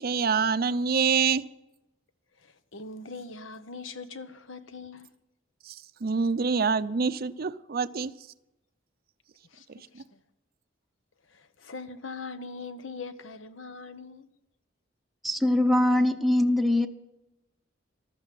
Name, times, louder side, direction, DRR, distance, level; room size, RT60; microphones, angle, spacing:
voice 1, 0.0-1.4 5.7-5.8 6.0-8.1, right 5 dB, 50° right, 0.5 m, -25 dB
voice 2, 2.4-5.1 9.5-10.2 11.3-14.3, left 4 dB, 80° left, 1.0 m, -42 dB
voice 3, 15.2-16.9, left 1 dB, ahead, 0.8 m, -22 dB
14.5 x 12.5 x 7.7 m
head